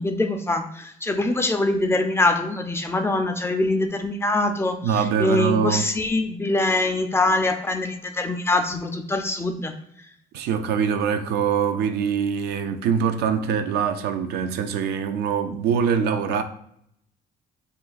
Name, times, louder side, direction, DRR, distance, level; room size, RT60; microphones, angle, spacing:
voice 1, 0.0-9.7, left 2 dB, 15° left, 0.3 m, -23 dB
voice 2, 4.8-5.9 10.3-16.4, right 7 dB, 75° right, 0.4 m, -23 dB
2.4 x 2.3 x 3.9 m
cardioid pair, 110°, 17 cm